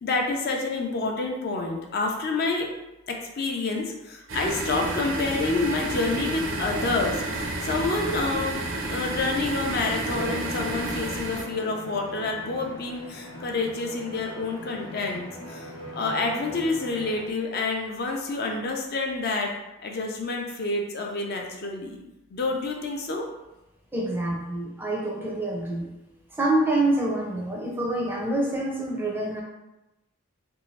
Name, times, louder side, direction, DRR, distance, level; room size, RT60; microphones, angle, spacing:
voice 1, 0.0-2.7 3.1-8.6 8.9-19.5 19.8-22.0 22.3-23.3, left 3 dB, 45° left, 1 dB, 0.4 m, -28 dB
sound 1, 4.3-11.4, right 2 dB, 60° right, 0.5 m, -30 dB
Bowed string instrument, 10.0-17.4, equal, 70° left, 0.9 m, -39 dB
voice 2, 23.9-25.9 26.4-29.4, right 2 dB, 10° right, -2 dB, 0.4 m, -26 dB
3.2 x 2.6 x 3.1 m, 0.96 s
head